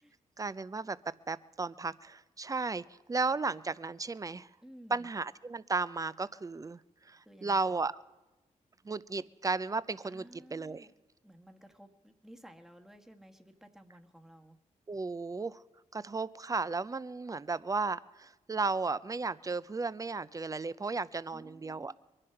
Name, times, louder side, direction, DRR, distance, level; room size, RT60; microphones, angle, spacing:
voice 1, 0.4-1.0 1.3-4.5 4.9-6.8 7.1-7.9 8.8-10.9 14.9-15.6 15.9-21.9, right 4 dB, 25° right, 17 dB, 0.5 m, -34 dB
voice 2, 4.6-5.1 7.2-7.8 10.0-10.9 11.2-14.6 21.3-22.0, equal, 5° right, 4 dB, 1.4 m, -55 dB
22.5 x 9.8 x 5.8 m, 1.1 s
cardioid pair, 55°, 14 cm